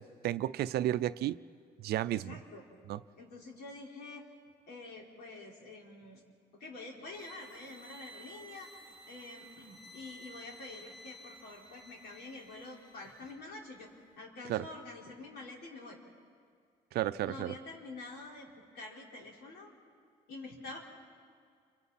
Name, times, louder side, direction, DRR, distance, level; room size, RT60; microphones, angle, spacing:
voice 1, 0.0-1.4 1.8-2.4 2.9-3.0 14.5-14.6 16.9-17.5, right 13 dB, 70° right, 14 dB, 0.6 m, -32 dB
voice 2, 2.1-2.6 3.2-4.3 4.7-6.2 6.5-13.9 14.2-16.0 17.2-19.7 20.3-20.8, left 2 dB, 75° left, -2 dB, 4.9 m, -47 dB
sound 1, 7.1-13.4, right 1 dB, 25° left, 2.1 m, -54 dB
29.5 x 24.5 x 4.3 m, 2.2 s
cardioid pair, 110°, 17 cm